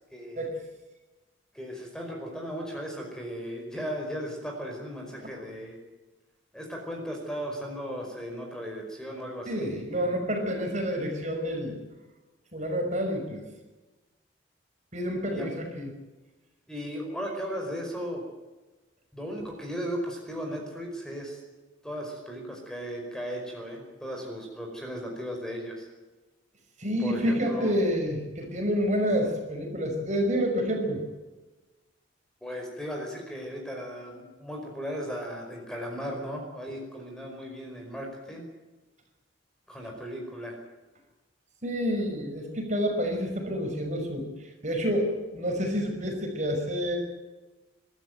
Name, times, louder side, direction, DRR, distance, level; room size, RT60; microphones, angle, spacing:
voice 1, 0.1-0.4 1.5-5.8 6.5-10.1 15.3-15.5 16.7-18.2 19.1-21.4 21.8-25.9 27.0-27.7 32.4-38.5 39.7-40.6, equal, 5° left, 1 dB, 5.1 m, -36 dB
voice 2, 9.4-11.8 12.5-13.5 14.9-15.9 26.8-31.0 41.6-47.0, equal, 40° right, 3 dB, 5.7 m, -28 dB
25.5 x 13.5 x 9.2 m, 1.2 s
head